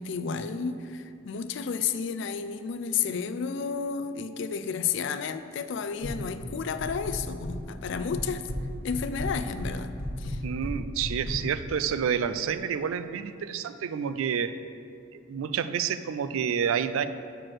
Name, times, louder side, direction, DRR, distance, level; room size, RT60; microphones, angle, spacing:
voice 1, 0.0-8.4 8.8-10.4, left 6 dB, 55° left, 11 dB, 0.3 m, -32 dB
sound 1, 6.0-6.5 6.8-7.6 7.8-8.6 8.9-11.4, left 1 dB, 85° left, 1.0 m, -34 dB
voice 2, 10.4-14.5 15.1-17.1, right 7 dB, 75° right, 12 dB, 0.3 m, -29 dB
6.2 x 4.5 x 6.2 m, 2.5 s
head